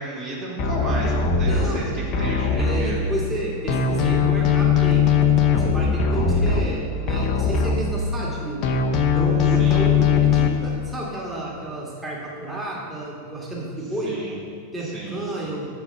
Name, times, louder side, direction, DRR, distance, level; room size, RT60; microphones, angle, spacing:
voice 1, 0.0-3.0 6.1-6.4 9.6-9.9 14.0-14.4 14.8-15.2, right 2 dB, 35° right, -5 dB, 1.8 m, -33 dB
sound 1, 0.6-3.4 3.7-8.3 8.6-10.5, left 6 dB, 40° left, 0.8 m, -20 dB
voice 2, 1.4-1.8 2.6-5.1 5.6-8.6 9.1-14.1 14.7-15.7, right 1 dB, 10° right, -5 dB, 2.0 m, -31 dB
7.0 x 5.9 x 7.0 m, 2.1 s
figure-of-eight pair, 90°, 0 cm